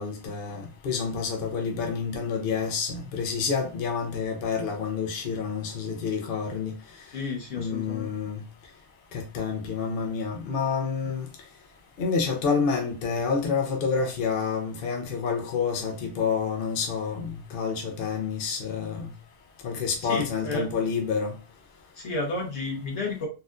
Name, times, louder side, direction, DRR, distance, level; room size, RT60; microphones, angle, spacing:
voice 1, 0.0-6.7 7.5-8.4 9.1-11.3 12.0-19.1 19.6-21.3, left 5 dB, 60° left, 0.8 m, -28 dB
voice 2, 7.1-8.1 20.0-20.7 22.0-23.3, left 3 dB, 85° left, 1.5 m, -31 dB
4.1 x 2.4 x 2.5 m
omnidirectional pair, 1.1 m